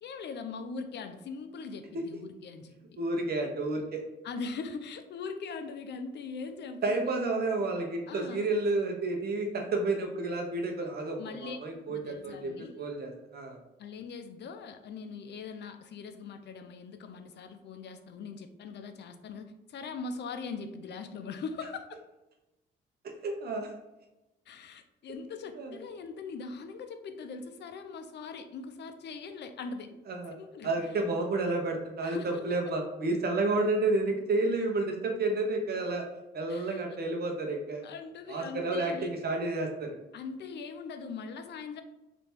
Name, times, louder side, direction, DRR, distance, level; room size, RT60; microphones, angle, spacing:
voice 1, 0.0-3.0 4.2-7.1 8.1-8.5 11.2-12.9 13.8-22.0 24.5-29.9 30.4-30.8 32.0-32.6 36.5-36.8 37.8-39.1 40.1-41.8, left 4 dB, 60° left, 8 dB, 0.6 m, -41 dB
voice 2, 3.0-4.0 6.8-12.5 12.8-13.6 23.2-23.7 25.6-25.8 30.1-30.3 30.6-36.0 36.3-37.8 38.3-39.9, right 2 dB, 50° right, 2 dB, 1.1 m, -30 dB
3.4 x 3.0 x 4.4 m, 1.0 s
cardioid pair, 90°, 20 cm